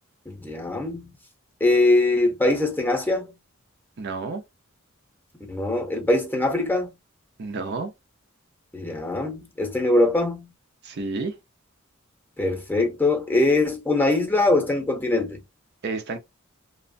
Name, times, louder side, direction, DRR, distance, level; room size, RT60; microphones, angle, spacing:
voice 1, 0.3-1.1 1.6-3.3 5.5-6.9 8.7-10.5 12.4-15.4, left 2 dB, 10° left, 0.7 m, -22 dB
voice 2, 4.0-4.4 7.4-7.9 10.8-11.4 15.8-16.2, right 3 dB, 55° right, 0.5 m, -30 dB
2.9 x 2.1 x 2.5 m
head